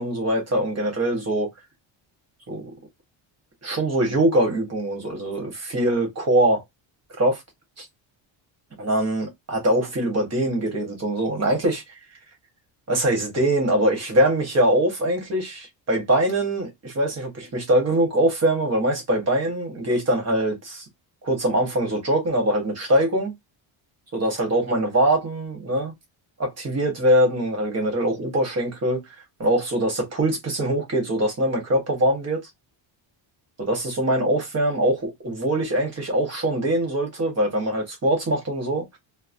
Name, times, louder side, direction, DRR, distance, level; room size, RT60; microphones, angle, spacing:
voice 1, 0.0-1.5 2.5-2.7 3.6-6.6 7.2-7.4 7.8-7.9 8.8-11.8 12.9-20.8 21.2-23.3 24.1-25.9 26.4-29.0 29.4-32.4 33.6-39.0, right 1 dB, 30° right, 1.1 m, -23 dB
2.9 x 2.0 x 2.5 m
cardioid pair, 145°, 50 cm